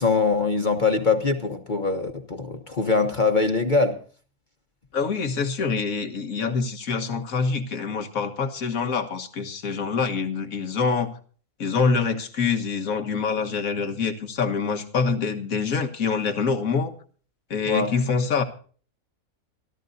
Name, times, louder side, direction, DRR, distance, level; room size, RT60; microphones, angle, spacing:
voice 1, 0.0-4.0 17.6-17.9, left 4 dB, 35° left, 1.2 m, -23 dB
voice 2, 4.9-11.1 11.6-16.9 17.5-18.4, left 5 dB, 80° left, 1.8 m, -25 dB
25.5 x 13.0 x 2.7 m
omnidirectional pair, 1.5 m